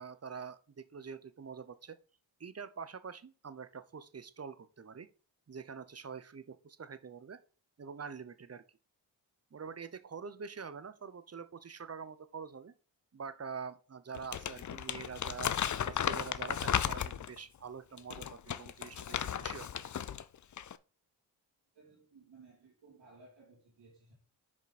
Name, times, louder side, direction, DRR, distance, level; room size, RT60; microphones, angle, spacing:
voice 1, 0.0-2.0 2.4-5.1 5.5-7.4 7.8-8.6 9.5-12.7 13.1-15.5 15.8-19.7, right 6 dB, 35° right, 0.8 m, -45 dB
Crumpling crinkling, 14.1-17.4 18.0-20.2 20.5-20.8, left 9 dB, 40° left, 0.5 m, -35 dB
voice 2, 21.7-24.1, right 3 dB, 85° right, 3.2 m, -59 dB
7.1 x 5.0 x 4.2 m
supercardioid pair, 45°, 44 cm